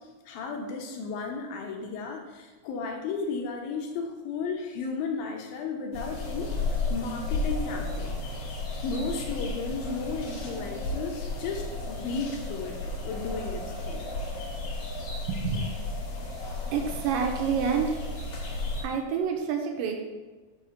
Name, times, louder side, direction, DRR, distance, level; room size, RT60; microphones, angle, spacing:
voice 1, 0.3-6.5 6.9-8.2 8.8-14.1, left 4 dB, 80° left, 2 dB, 2.5 m, -34 dB
sound 1, 5.9-18.8, left 2 dB, 60° left, 1.8 m, -33 dB
voice 2, 15.3-15.9 16.7-18.1 18.8-19.9, right 6 dB, 80° right, 2 dB, 2.1 m, -28 dB
6.5 x 2.8 x 5.6 m, 1.3 s
omnidirectional pair, 4.2 m